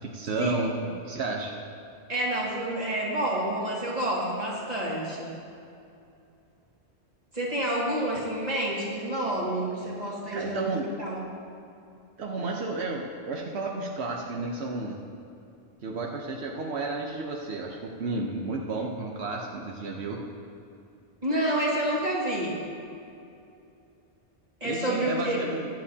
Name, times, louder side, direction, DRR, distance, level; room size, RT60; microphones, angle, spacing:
voice 1, 0.0-0.7 1.0-1.6 10.3-10.9 12.2-15.0 15.8-20.2 24.6-25.7, right 3 dB, 85° right, 0 dB, 1.1 m, -32 dB
voice 2, 2.1-5.3 7.3-11.2 21.2-22.6 24.6-25.5, right 1 dB, 40° right, -5 dB, 2.3 m, -29 dB
22.0 x 7.5 x 2.8 m, 2.6 s
omnidirectional pair, 1.1 m